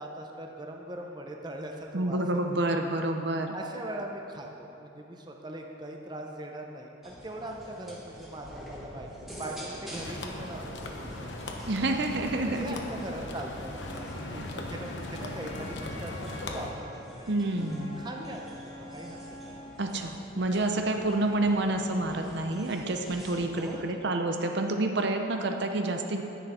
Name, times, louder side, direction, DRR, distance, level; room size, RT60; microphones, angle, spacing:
voice 1, 0.0-2.2 2.5-2.8 3.5-11.6 12.4-17.4 18.0-19.2 19.5-19.6 23.6-24.1, right 1 dB, 20° right, 1 dB, 0.7 m, -41 dB
voice 2, 1.9-3.5 11.7-12.7 17.3-17.9 19.8-26.2, right 2 dB, 55° right, 4 dB, 0.7 m, -28 dB
sound 1, 7.0-23.8, equal, ahead, 1.5 m, -47 dB
sound 2, 9.9-16.7, left 1 dB, 60° left, 1.0 m, -39 dB
Wind instrument woodwind instrument, 13.7-19.8, left 1 dB, 30° left, 1.9 m, -47 dB
10.5 x 10.0 x 4.3 m, 2.9 s
head